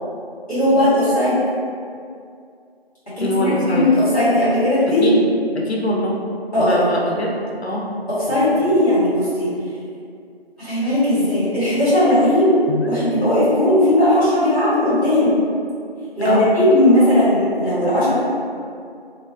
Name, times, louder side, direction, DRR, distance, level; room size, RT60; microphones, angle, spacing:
voice 1, 0.5-1.4 3.2-5.1 6.5-6.9 8.1-9.5 10.6-12.5 12.8-15.3 16.1-18.1, left 1 dB, 15° left, -14 dB, 1.3 m, -17 dB
voice 2, 3.2-3.9 5.0-5.3 5.5-6.2 6.6-7.3 7.6-7.8 8.3-8.8 12.7-12.8 16.2-16.5, left 1 dB, 80° left, -1 dB, 0.6 m, -23 dB
3.4 x 2.0 x 3.7 m, 2.4 s
figure-of-eight pair, 175°, 31 cm